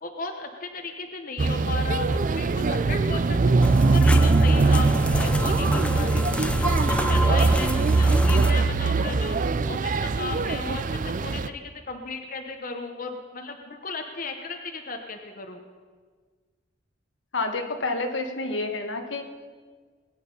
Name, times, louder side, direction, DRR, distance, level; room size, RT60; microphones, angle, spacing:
voice 1, 0.0-3.4 3.8-7.7 8.0-9.4 9.7-15.6, left 4 dB, 45° left, 4 dB, 1.0 m, -35 dB
sound 1, 1.4-11.5, right 3 dB, 45° right, 0.4 m, -22 dB
sound 2, 3.6-8.5, left 1 dB, 5° left, 0.6 m, -28 dB
voice 2, 17.3-19.2, left 2 dB, 80° left, 5 dB, 1.4 m, -29 dB
20.5 x 9.2 x 5.5 m, 1.5 s
head